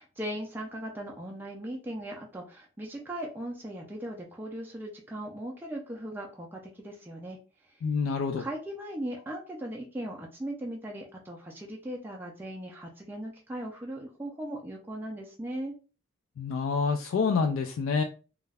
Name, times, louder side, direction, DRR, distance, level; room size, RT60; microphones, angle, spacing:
voice 1, 0.0-7.4 7.6-7.7 8.4-15.7, right 1 dB, 10° right, -1 dB, 0.3 m, -38 dB
voice 2, 7.8-8.5 16.4-18.0, left 5 dB, 75° left, 5 dB, 0.3 m, -27 dB
2.3 x 2.1 x 3.2 m, 0.35 s
head